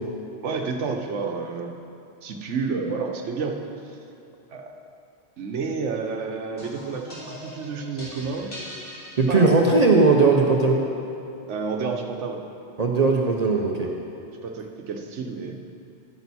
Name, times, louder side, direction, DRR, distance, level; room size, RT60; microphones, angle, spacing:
voice 1, 0.4-1.8 2.2-4.0 4.5-4.7 5.4-8.5 9.3-9.5 11.5-12.4 13.8-13.9 14.4-15.6, right 4 dB, 90° right, 3 dB, 1.2 m, -30 dB
sound 1, 6.6-10.0, left 1 dB, 90° left, 3.0 m, -41 dB
voice 2, 9.2-10.8 12.8-13.9, right 3 dB, 40° right, 0 dB, 0.7 m, -18 dB
12.0 x 8.9 x 4.1 m, 2.7 s
omnidirectional pair, 1.2 m